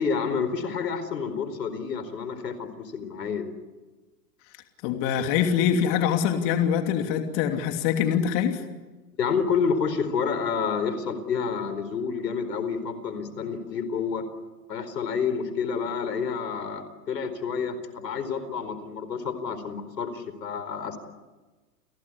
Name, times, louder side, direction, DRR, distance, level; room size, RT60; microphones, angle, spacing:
voice 1, 0.0-3.5 9.2-14.2 14.7-21.0, left 6 dB, 90° left, 11 dB, 4.5 m, -29 dB
voice 2, 4.8-8.6, left 8 dB, 40° left, 5 dB, 3.0 m, -24 dB
30.0 x 18.0 x 9.8 m, 1.2 s
hypercardioid pair, 130°, 48 cm